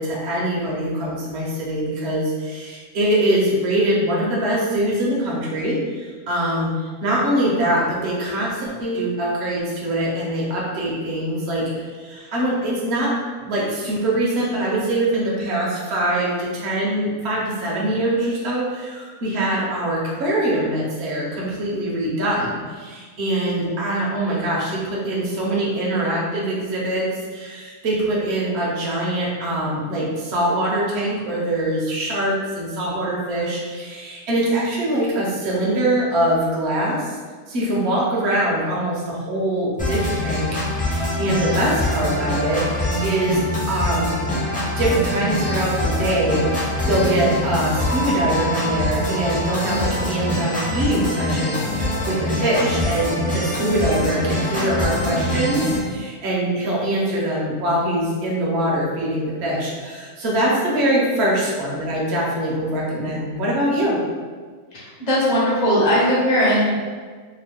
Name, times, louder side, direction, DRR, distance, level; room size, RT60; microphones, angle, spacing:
voice 1, 0.0-37.1 37.5-40.5 40.7-44.1 44.8-64.0, right 1 dB, 55° right, -5 dB, 1.0 m, -23 dB
sound 1, 39.8-55.8, left 1 dB, 10° left, 0.4 m, -24 dB
sound 2, 47.8-52.4, right 1 dB, 75° left, 1.2 m, -32 dB
voice 2, 64.7-66.8, equal, 35° left, -7 dB, 1.0 m, -19 dB
3.0 x 2.2 x 3.4 m, 1.5 s
omnidirectional pair, 1.5 m